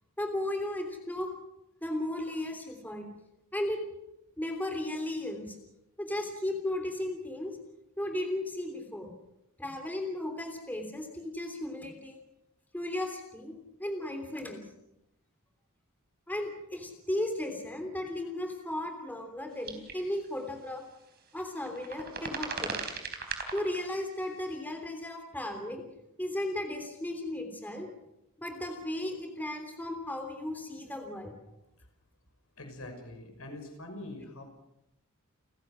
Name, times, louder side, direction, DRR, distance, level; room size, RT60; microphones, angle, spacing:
voice 1, 0.2-1.3 1.8-3.0 3.5-3.8 4.4-5.6 6.0-7.5 8.0-9.1 9.6-12.2 12.7-14.6 16.3-20.8 21.3-22.7 23.5-25.8 26.2-27.9 28.4-31.3, left 1 dB, 10° left, 4 dB, 3.2 m, -35 dB
sound 1, 19.7-19.9 20.2-20.3 21.4-23.8 24.4-24.5, right 5 dB, 45° right, 3.9 m, -37 dB
voice 2, 32.6-34.4, left 1 dB, 75° left, 5 dB, 5.9 m, -43 dB
30.0 x 15.5 x 6.3 m, 0.87 s
head